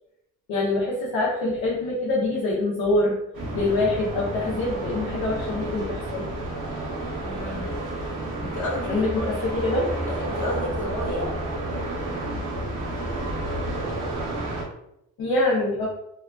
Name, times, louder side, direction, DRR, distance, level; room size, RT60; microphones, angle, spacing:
voice 1, 0.5-3.2 3.5-6.2 8.9-9.9 15.2-15.9, left 2 dB, 85° left, -5 dB, 0.7 m, -25 dB
sound 1, 3.3-14.6, right 1 dB, 65° right, 1.1 m, -30 dB
voice 2, 7.2-7.8 8.4-9.3 10.1-11.4, left 1 dB, 55° left, -2 dB, 1.0 m, -31 dB
2.8 x 2.3 x 2.3 m, 0.81 s
supercardioid pair, 50°, 35 cm